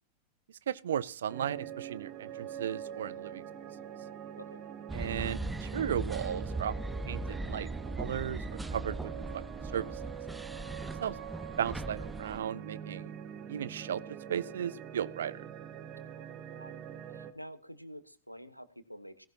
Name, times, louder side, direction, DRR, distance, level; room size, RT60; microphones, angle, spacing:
voice 1, 0.7-3.4 4.9-6.7 7.1-7.7 8.0-8.4 8.7-9.4 9.7-9.9 11.0-11.2 11.6-13.1 13.5-14.0 14.3-15.4, right 9 dB, 65° right, 18 dB, 0.7 m, -35 dB
sound 1, 1.3-17.3, right 9 dB, 35° right, 1.8 m, -44 dB
voice 2, 4.4-4.7 16.2-16.8 17.1-19.3, equal, 90° left, 12 dB, 1.3 m, -49 dB
sound 2, 4.9-12.4, right 2 dB, 5° right, 0.6 m, -39 dB
17.5 x 16.5 x 2.8 m, 0.36 s
figure-of-eight pair, 90°, 0 cm